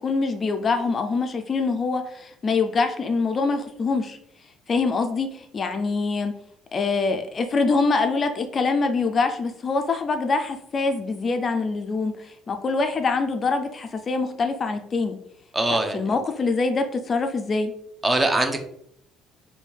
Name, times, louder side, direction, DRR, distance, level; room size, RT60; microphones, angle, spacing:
voice 1, 0.0-4.2 4.7-6.3 6.7-15.2 15.7-17.7, left 4 dB, 35° left, 6 dB, 0.4 m, -24 dB
voice 2, 15.5-16.1 18.0-18.6, right 2 dB, 15° right, 6 dB, 0.7 m, -22 dB
3.4 x 2.7 x 4.4 m, 0.70 s
cardioid pair, 110°, 0 cm